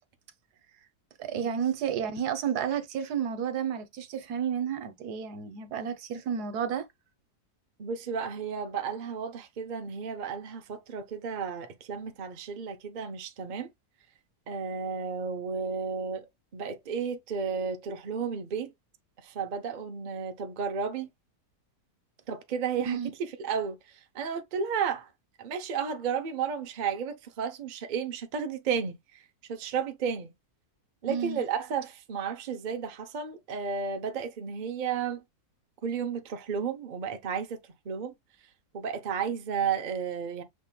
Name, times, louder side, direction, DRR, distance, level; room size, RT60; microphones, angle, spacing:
voice 1, 1.2-6.9 22.9-23.1 31.1-31.4, right 8 dB, 80° right, 1.3 m, -31 dB
voice 2, 7.8-13.7 14.5-18.7 19.2-21.1 22.3-25.1 25.4-30.3 31.0-35.2 35.8-37.6 37.8-38.1 38.7-40.4, right 6 dB, 45° right, 0.6 m, -33 dB
6.2 x 3.6 x 2.2 m
omnidirectional pair, 1.7 m